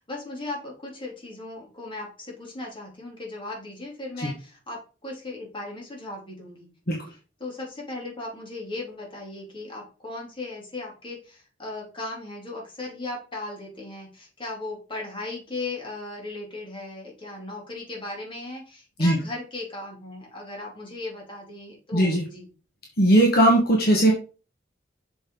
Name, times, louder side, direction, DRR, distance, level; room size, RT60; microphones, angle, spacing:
voice 1, 0.0-6.7 7.4-22.5, left 2 dB, 30° left, -2 dB, 3.6 m, -37 dB
voice 2, 21.9-22.2 23.0-24.1, right 1 dB, 55° left, 0 dB, 1.8 m, -18 dB
7.2 x 6.9 x 4.0 m, 0.35 s
head